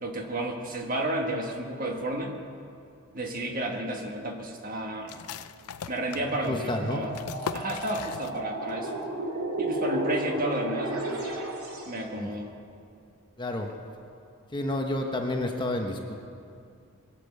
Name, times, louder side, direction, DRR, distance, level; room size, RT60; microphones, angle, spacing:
voice 1, 0.0-2.3 3.1-5.2 5.9-7.1 7.5-9.0 9.6-11.2 11.8-12.5, right 1 dB, 40° right, 2 dB, 1.5 m, -32 dB
sound 1, 5.1-8.7 9.0-9.1 9.5-10.0, left 6 dB, 85° left, 0.5 m, -39 dB
sound 2, 6.3-12.0, right 1 dB, 75° right, 2.6 m, -33 dB
voice 2, 6.5-7.0 12.2-12.3 13.4-13.7 14.5-16.2, left 1 dB, 20° left, 2 dB, 1.0 m, -30 dB
21.5 x 7.6 x 8.4 m, 2.4 s
head